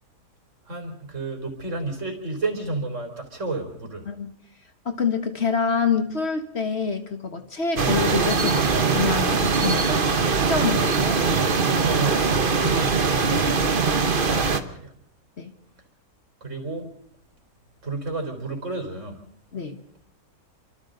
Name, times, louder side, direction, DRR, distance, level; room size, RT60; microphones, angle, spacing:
voice 1, 0.7-4.0 11.8-13.1 14.3-14.9 16.4-16.9 17.8-19.2, right 3 dB, 55° right, 5 dB, 4.3 m, -31 dB
voice 2, 4.8-10.1 10.4-11.3 12.6-12.8 13.5-13.7 15.4-15.6 19.5-19.8, left 5 dB, 45° left, 6 dB, 1.7 m, -27 dB
sound 1, 7.8-14.6, right 4 dB, 40° right, 1.3 m, -21 dB
28.0 x 25.5 x 4.0 m, 0.70 s
omnidirectional pair, 1.5 m